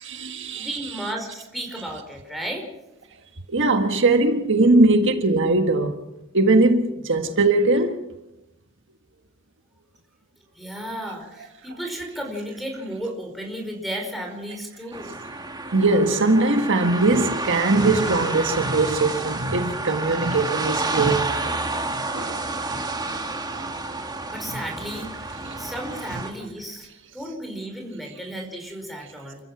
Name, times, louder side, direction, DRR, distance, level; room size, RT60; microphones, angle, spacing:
voice 1, 0.0-0.8 3.5-6.0 6.3-8.0 15.7-21.3 22.1-22.4, right 2 dB, 60° right, 1.6 m, -20 dB
voice 2, 0.5-2.6 10.5-15.1 24.3-25.3 25.6-26.9 27.1-29.4, right 1 dB, ahead, 5.0 m, -33 dB
sound 1, 14.9-26.3, right 2 dB, 20° right, 1.8 m, -30 dB
29.0 x 14.5 x 6.2 m
head